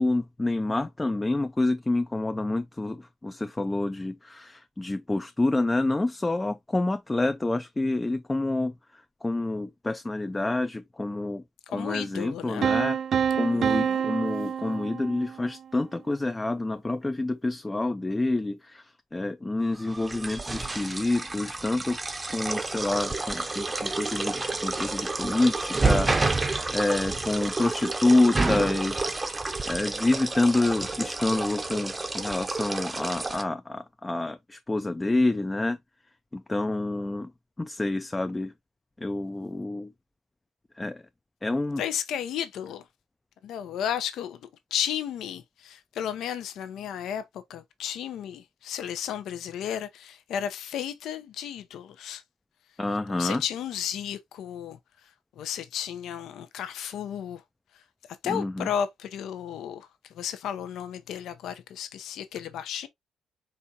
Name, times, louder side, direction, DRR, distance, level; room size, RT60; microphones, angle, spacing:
voice 1, 0.0-8.7 9.2-11.4 11.7-13.0 13.3-22.0 22.3-29.1 29.7-35.8 36.3-37.3 37.6-38.5 39.0-39.9 40.8-41.0 41.4-41.8 52.8-53.4 58.3-58.7, left 2 dB, 15° left, 0.4 m, -28 dB
voice 2, 11.7-12.7 13.5-14.0 41.8-42.8 43.4-44.4 44.7-47.2 47.5-52.2 53.1-54.8 55.4-57.4 58.2-59.9 60.1-62.9, left 9 dB, 80° left, 0.7 m, -33 dB
sound 1, 12.6-15.5, right 8 dB, 55° right, 0.3 m, -27 dB
sound 2, 19.9-33.4, right 3 dB, 20° right, 0.7 m, -29 dB
4.4 x 3.5 x 2.6 m
cardioid pair, 90°, 0 cm